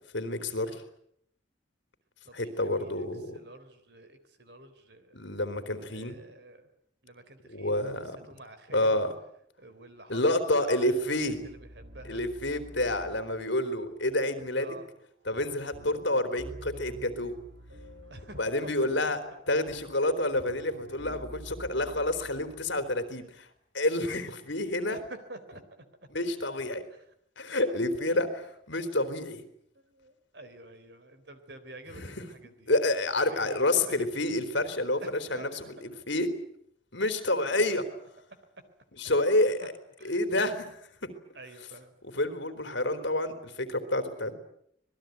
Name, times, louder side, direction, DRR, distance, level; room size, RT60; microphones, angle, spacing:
voice 1, 0.1-0.7 2.3-3.4 5.1-6.2 7.5-8.2 8.7-9.1 10.1-11.4 12.0-14.7 15.3-17.3 18.4-19.2 19.5-23.5 23.7-25.0 26.1-26.8 27.4-29.4 31.9-32.2 32.7-35.0 35.3-36.3 36.9-37.8 39.0-39.7 40.0-41.1 42.1-44.3, left 1 dB, 70° left, 9 dB, 3.7 m, -29 dB
voice 2, 2.2-3.1 3.3-5.2 5.9-6.7 7.0-7.9 8.3-9.1 9.6-12.2 14.5-14.9 18.1-19.1 24.9-25.6 26.9-27.0 27.5-27.6 28.0-28.1 28.8-28.9 29.8-32.7 33.2-34.1 35.0-35.8 37.5-37.6 39.6-39.7 40.0-40.2 41.3-42.0, right 2 dB, 60° right, 11 dB, 3.7 m, -49 dB
sound 1, 11.0-23.1, right 1 dB, 85° right, 6.1 m, -49 dB
26.0 x 20.0 x 9.4 m, 0.71 s
head